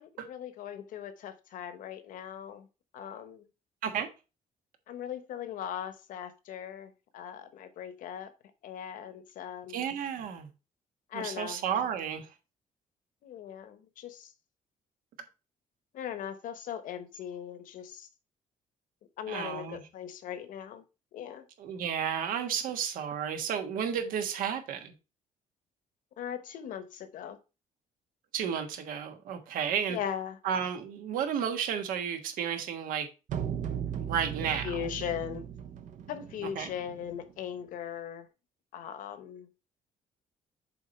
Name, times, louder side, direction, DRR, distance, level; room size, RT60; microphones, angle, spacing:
voice 1, 0.0-2.7 2.9-3.4 4.9-8.3 8.6-9.8 11.1-11.6 13.2-14.3 15.9-18.1 19.2-20.8 21.1-21.4 26.2-27.4 29.9-30.4 34.4-35.4 36.1-38.3 38.7-39.5, left 9 dB, 70° left, 1.1 m, -39 dB
voice 2, 9.7-10.5 11.1-12.3 19.3-19.8 21.6-24.9 28.3-30.0 30.4-33.1 33.7-34.8 36.5-36.7, right 8 dB, 80° right, 1.3 m, -32 dB
sound 1, 33.3-37.3, right 9 dB, 65° right, 0.8 m, -37 dB
7.2 x 4.4 x 4.3 m
cardioid pair, 150°, 14 cm